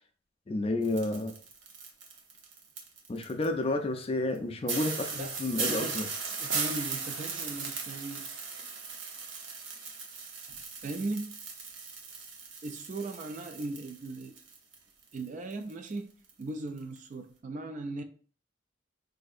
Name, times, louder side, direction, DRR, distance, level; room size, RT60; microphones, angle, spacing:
voice 1, 0.5-1.3 3.1-6.1, left 2 dB, 30° left, 0.4 m, -31 dB
sound 1, 0.8-3.5 4.0-4.1 4.3-4.4 4.7-14.8 15.0-16.0 16.3-16.4 16.8-17.0, right 5 dB, 75° right, 0.7 m, -38 dB
voice 2, 5.7-6.0 6.4-8.3 10.8-11.3 12.6-14.3 15.1-16.1 16.4-18.0, right 2 dB, 40° right, 0.3 m, -38 dB
4.2 x 2.6 x 2.4 m
head